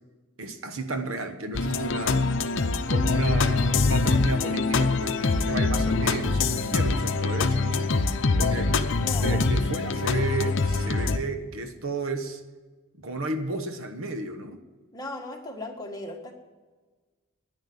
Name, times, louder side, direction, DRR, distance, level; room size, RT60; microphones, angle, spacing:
voice 1, 0.4-2.3 2.9-7.9 8.4-12.4 13.0-14.6, right 2 dB, 65° right, 8 dB, 1.1 m, -33 dB
sound 1, 1.5-11.2, left 3 dB, 55° left, 0.8 m, -24 dB
voice 2, 9.0-9.4 14.9-16.3, left 2 dB, 15° left, 1 dB, 1.5 m, -37 dB
10.5 x 10.5 x 8.7 m, 1.3 s
head